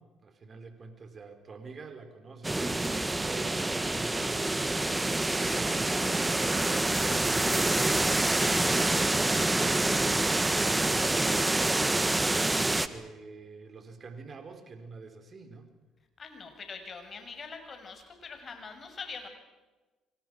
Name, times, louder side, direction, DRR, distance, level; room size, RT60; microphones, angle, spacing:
voice 1, 0.0-8.1 8.5-15.7, right 4 dB, 40° right, 8 dB, 4.3 m, -46 dB
sound 1, 2.4-12.9, right 2 dB, 15° right, 1.8 m, -27 dB
voice 2, 8.3-8.8 16.2-19.3, left 5 dB, 40° left, 6 dB, 6.6 m, -43 dB
29.5 x 25.5 x 6.2 m, 1.2 s
hypercardioid pair, 55°, 0 cm